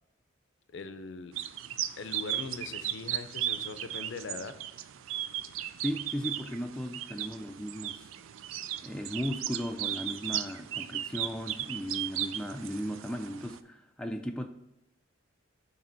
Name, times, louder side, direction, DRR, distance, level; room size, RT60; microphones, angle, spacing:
voice 1, 0.7-1.4 2.0-4.5, left 4 dB, 60° left, 10 dB, 0.5 m, -41 dB
sound 1, 1.3-13.6, right 11 dB, 80° right, 0.4 m, -36 dB
voice 2, 5.8-8.1 8.8-14.5, equal, 5° left, 4 dB, 0.3 m, -36 dB
6.7 x 3.4 x 5.8 m, 0.88 s
head